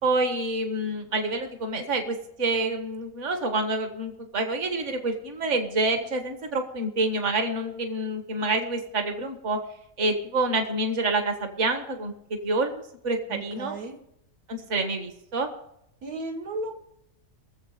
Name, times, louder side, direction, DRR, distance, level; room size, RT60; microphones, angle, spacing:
voice 1, 0.0-9.6 10.0-13.8 14.5-15.5, right 2 dB, 55° right, 5 dB, 1.8 m, -27 dB
voice 2, 13.3-14.0 16.0-16.7, right 2 dB, 85° right, 2 dB, 2.0 m, -34 dB
22.5 x 7.7 x 5.0 m, 0.77 s
omnidirectional pair, 1.5 m